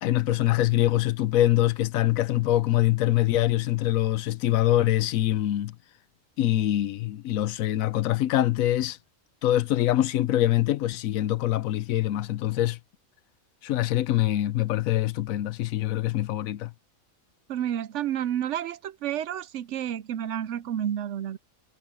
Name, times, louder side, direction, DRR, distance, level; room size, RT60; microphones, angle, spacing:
voice 1, 0.0-5.8 6.4-9.0 9.4-12.8 13.6-16.7, left 14 dB, 80° left, 1.0 m, -24 dB
voice 2, 17.5-21.4, right 10 dB, 70° right, 0.8 m, -30 dB
omnidirectional pair, 1.4 m